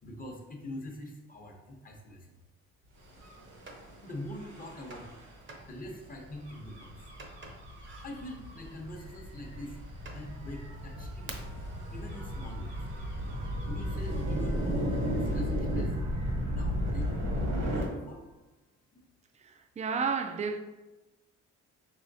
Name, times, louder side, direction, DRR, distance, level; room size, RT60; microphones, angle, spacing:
voice 1, 0.0-2.4 4.0-5.2 5.7-7.1 8.0-9.8 10.1-11.5 11.9-12.9 13.7-16.0 16.5-17.1 17.6-18.2 18.9-19.0, left 1 dB, 30° left, 0.9 m, -43 dB
Gull seagull / Waves surf / Siren, 3.1-17.8, equal, 70° right, 1.2 m, -36 dB
Thunder, 3.7-3.8 4.9-5.2 5.5-5.6 6.2-6.3 7.2-7.5 7.8-8.1 9.0-9.1 9.7-9.8 10.0-10.2 10.8-11.7 12.0-15.8, right 1 dB, 40° right, 0.8 m, -36 dB
voice 2, 19.4-20.6, right 5 dB, 25° right, 0.4 m, -32 dB
4.9 x 3.1 x 2.7 m
cardioid pair, 90°, 30 cm